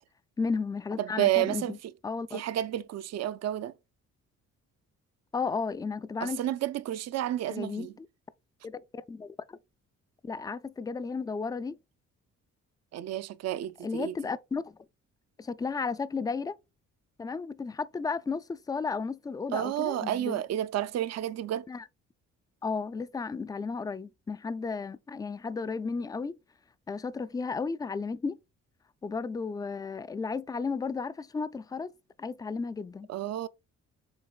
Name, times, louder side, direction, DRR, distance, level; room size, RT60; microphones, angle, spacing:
voice 1, 0.4-1.8 2.0-2.4 5.3-6.4 7.5-8.1 8.6-9.6 10.2-11.8 13.8-14.8 15.4-16.6 17.2-20.4 21.7-21.8 22.6-26.4 26.9-28.4 29.0-31.9 32.2-33.1, left 4 dB, 15° left, 0.3 m, -33 dB
voice 2, 1.0-1.9 2.3-3.7 6.2-7.9 12.9-14.2 19.5-21.7 33.1-33.5, right 13 dB, 60° right, 0.5 m, -31 dB
7.3 x 3.0 x 2.3 m
cardioid pair, 90°, 30 cm